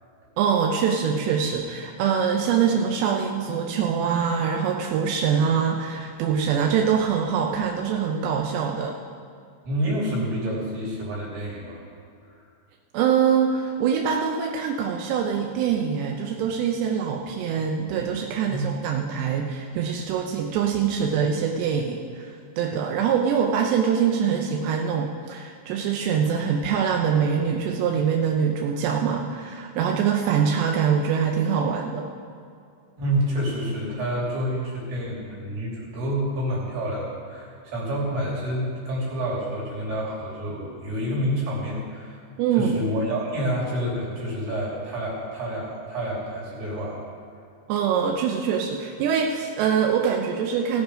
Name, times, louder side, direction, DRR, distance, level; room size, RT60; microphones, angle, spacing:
voice 1, 0.4-8.9 12.9-32.1 42.4-42.8 47.7-50.8, right 7 dB, 80° right, 1 dB, 2.6 m, -24 dB
voice 2, 9.7-11.8 18.4-18.7 33.0-42.2 42.6-47.0, equal, 60° right, -5 dB, 4.7 m, -28 dB
17.0 x 8.0 x 5.0 m, 2.4 s
omnidirectional pair, 5.5 m